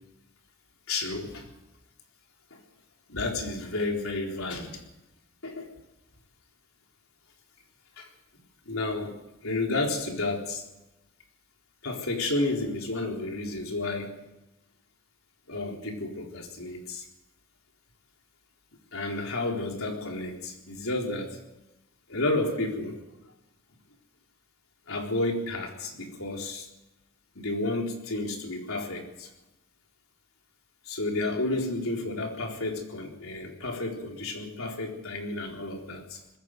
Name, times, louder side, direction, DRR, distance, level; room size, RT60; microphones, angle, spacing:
voice 1, 0.9-1.5 2.5-2.6 3.1-4.8 5.4-5.7 8.0-8.1 8.7-9.2 9.4-10.6 11.8-14.1 15.5-17.1 18.9-21.4 22.1-23.0 24.9-26.7 27.3-29.3 30.8-36.2, left 2 dB, 80° left, 1 dB, 4.1 m, -31 dB
20.5 x 16.0 x 7.8 m, 0.94 s
head